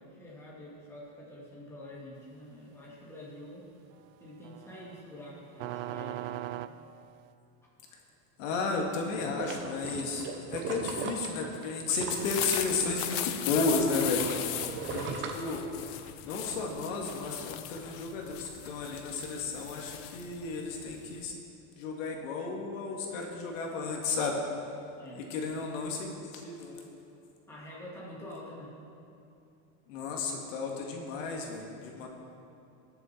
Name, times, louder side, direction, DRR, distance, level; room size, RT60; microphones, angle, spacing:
voice 1, 0.0-3.7 4.2-6.7 25.0-25.2 27.5-28.7, left 1 dB, 5° left, -6 dB, 2.3 m, -47 dB
sound 1, 4.4-7.3, right 14 dB, 85° right, 0.6 m, -39 dB
voice 2, 8.4-14.4 14.7-15.6 16.2-21.3 21.8-24.4 25.2-26.9 29.9-32.1, left 4 dB, 75° left, 0 dB, 2.1 m, -33 dB
sound 2, 9.1-13.2 13.6-16.1 16.5-16.6, right 5 dB, 30° right, 0.9 m, -38 dB
sound 3, 12.0-21.3, left 13 dB, 50° left, 0.7 m, -38 dB
20.5 x 7.1 x 4.5 m, 2.7 s
supercardioid pair, 165°, 39 cm